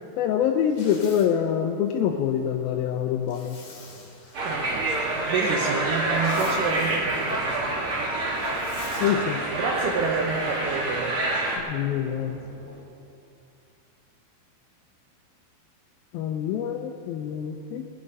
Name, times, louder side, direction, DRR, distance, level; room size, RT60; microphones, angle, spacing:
voice 1, 0.2-3.6 9.0-9.4 11.6-12.4 16.1-17.8, left 9 dB, 85° left, 3 dB, 2.1 m, -25 dB
Zipper (clothing), 0.6-1.3 3.3-4.6 5.9-6.6 8.4-9.2, left 3 dB, 40° left, 2.7 m, -45 dB
sound 1, 4.3-11.6, right 2 dB, 40° right, 2.2 m, -27 dB
voice 2, 4.5-7.9 9.5-11.2, right 5 dB, 75° right, 1 dB, 2.0 m, -29 dB
sound 2, 5.1-12.8, left 1 dB, 15° left, 3.0 m, -47 dB
20.5 x 9.0 x 5.4 m, 2.5 s
omnidirectional pair, 5.0 m